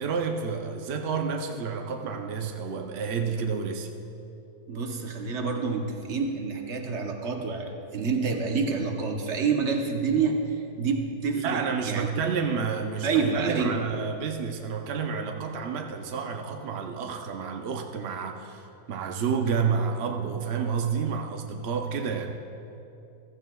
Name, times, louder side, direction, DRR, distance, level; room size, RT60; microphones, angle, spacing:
voice 1, 0.0-3.9 11.3-13.1 13.3-22.4, right 6 dB, 65° right, 3 dB, 0.6 m, -30 dB
voice 2, 4.7-11.6 11.9-12.2 13.0-13.9, right 5 dB, 50° right, 3 dB, 1.1 m, -28 dB
15.0 x 14.5 x 2.3 m, 2.8 s
omnidirectional pair, 1.8 m